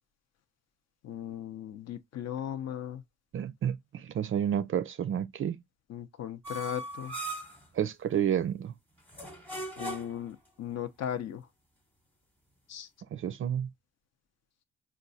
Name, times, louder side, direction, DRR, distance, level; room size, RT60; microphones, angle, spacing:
voice 1, 1.0-3.0 5.9-7.2 9.8-11.5 12.7-12.9, left 10 dB, 60° left, 0.6 m, -37 dB
voice 2, 3.3-5.6 7.7-8.7 13.1-13.7, right 9 dB, 45° right, 0.4 m, -30 dB
sound 1, 6.4-7.6 9.1-10.3, right 1 dB, 5° left, 0.9 m, -38 dB
4.5 x 2.3 x 2.6 m
cardioid pair, 90°, 30 cm